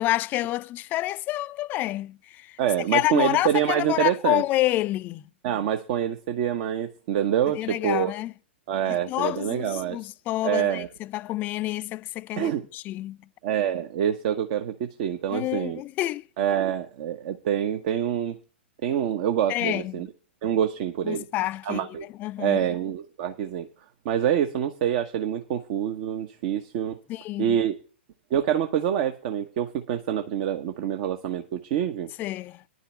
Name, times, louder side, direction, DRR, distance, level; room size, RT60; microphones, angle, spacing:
voice 1, 0.0-2.6 2.9-5.2 7.5-8.3 8.8-13.2 15.3-16.3 19.5-20.1 21.0-21.9 22.2-22.6 27.1-27.6 32.2-32.6, left 16 dB, 30° left, 0.4 m, -28 dB
voice 2, 2.6-4.4 5.4-8.1 8.7-10.1 10.4-10.9 12.4-12.6 13.4-15.8 16.4-18.4 18.8-20.1 20.4-21.2 21.6-22.1 22.4-23.7 24.0-27.0 27.4-27.7 28.3-32.1, right 10 dB, 50° right, 1.0 m, -26 dB
10.5 x 5.5 x 8.2 m
figure-of-eight pair, 110°, 6 cm